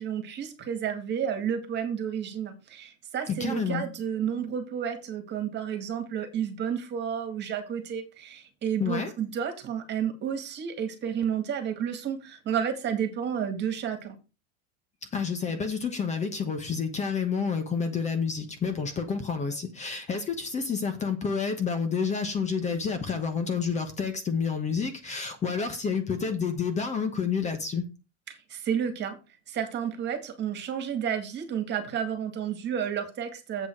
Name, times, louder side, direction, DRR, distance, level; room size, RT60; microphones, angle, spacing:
voice 1, 0.0-14.2 28.3-29.2 29.5-33.7, right 8 dB, 35° right, 2.1 m, -31 dB
voice 2, 3.3-3.8 8.8-9.1 15.1-27.8, left 5 dB, 20° left, 1.1 m, -29 dB
7.9 x 7.1 x 4.6 m
supercardioid pair, 140°, 32 cm